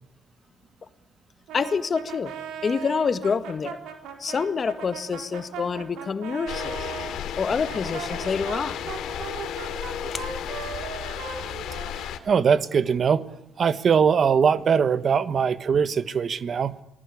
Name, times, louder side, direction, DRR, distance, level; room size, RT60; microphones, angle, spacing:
voice 1, 1.5-2.3 2.6-3.8 4.2-6.9 7.4-8.8 10.1-10.2, left 5 dB, 40° left, 11 dB, 1.8 m, -27 dB
Brass instrument, 1.5-7.1 7.6-12.4, right 8 dB, 90° right, 4.3 m, -38 dB
sound 1, 6.5-12.2, left 9 dB, 85° left, 2.5 m, -33 dB
voice 2, 12.0-13.3 13.6-16.7, right 6 dB, 50° right, 14 dB, 1.4 m, -21 dB
27.5 x 19.5 x 8.5 m, 0.83 s
cardioid pair, 90°, 0 cm